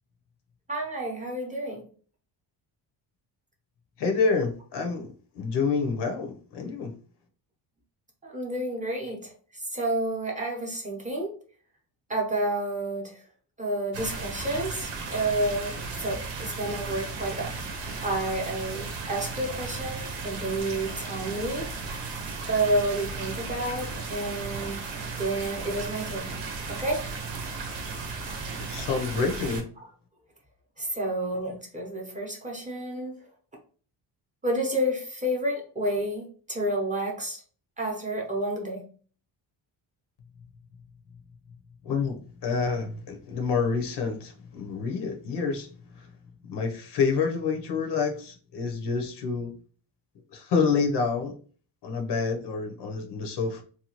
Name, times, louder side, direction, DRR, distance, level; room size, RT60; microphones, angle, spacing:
voice 1, 0.7-1.8 8.2-9.3 9.7-11.4 12.1-13.1 13.6-21.7 22.5-24.9 25.2-26.3 26.7-27.0 30.8-33.1 34.4-37.4 37.8-38.8, right 1 dB, 15° right, -1 dB, 0.7 m, -30 dB
voice 2, 4.0-6.9 28.6-29.7 41.8-45.7 45.9-46.1 46.4-49.5 50.3-51.4 51.8-53.6, left 5 dB, 65° left, 4 dB, 0.7 m, -28 dB
sound 1, 13.9-29.6, right 4 dB, 80° right, 0.8 m, -35 dB
2.8 x 2.3 x 2.8 m, 0.42 s
cardioid pair, 125°, 44 cm